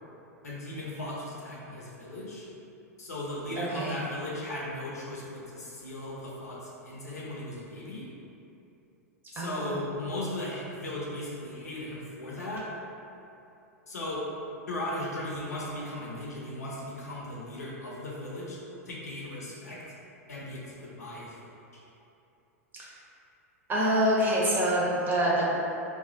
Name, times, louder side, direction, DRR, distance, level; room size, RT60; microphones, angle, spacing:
voice 1, 0.4-2.5 3.0-8.0 9.3-12.6 13.9-14.2 14.7-18.6 18.9-19.8 20.3-21.4, left 1 dB, 75° left, -6 dB, 0.7 m, -37 dB
voice 2, 3.6-4.0 9.3-9.8 23.7-25.5, right 1 dB, 20° right, -5 dB, 0.7 m, -26 dB
2.3 x 2.0 x 3.8 m, 2.8 s
figure-of-eight pair, 95°, 9 cm